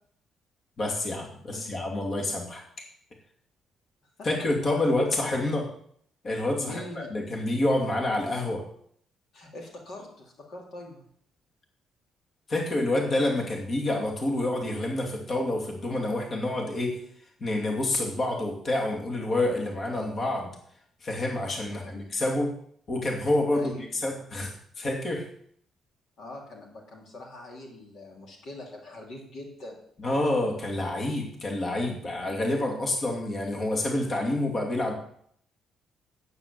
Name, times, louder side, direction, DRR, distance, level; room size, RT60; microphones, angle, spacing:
voice 1, 0.8-2.6 4.2-5.7 6.2-8.6 12.5-17.0 17.4-20.5 21.0-22.5 22.9-23.7 24.0-25.3 30.0-34.9, left 1 dB, 45° left, 0 dB, 2.7 m, -28 dB
voice 2, 6.6-7.1 9.3-11.0 21.5-22.1 23.5-23.8 26.2-29.8, left 2 dB, 65° left, 1 dB, 2.8 m, -43 dB
9.7 x 8.4 x 7.0 m, 0.65 s
cardioid pair, 90°, 0 cm